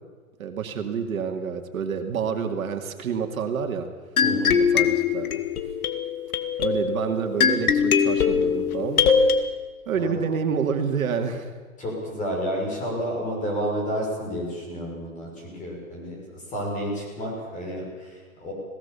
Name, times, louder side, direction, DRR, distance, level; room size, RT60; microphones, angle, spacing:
voice 1, 0.4-3.9 4.6-5.4 6.6-9.0 9.9-11.5, right 6 dB, 70° right, 5 dB, 2.3 m, -28 dB
sound 1, 4.2-9.4, left 6 dB, 80° left, 1.8 m, -22 dB
voice 2, 4.2-4.6 9.9-10.1 11.8-16.2 16.5-18.5, equal, 15° left, -1 dB, 6.2 m, -30 dB
21.5 x 18.0 x 7.0 m, 1.4 s
hypercardioid pair, 155°, 43 cm